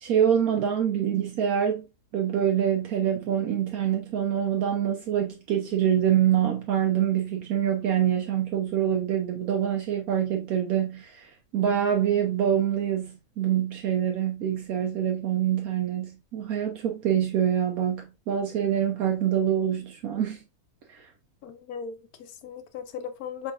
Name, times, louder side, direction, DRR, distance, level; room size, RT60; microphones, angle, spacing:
voice 1, 0.0-1.8 2.1-20.4, right 9 dB, 75° right, 1.1 m, -25 dB
voice 2, 21.4-23.5, left 7 dB, 75° left, 1.2 m, -38 dB
4.5 x 3.4 x 2.4 m
omnidirectional pair, 1.6 m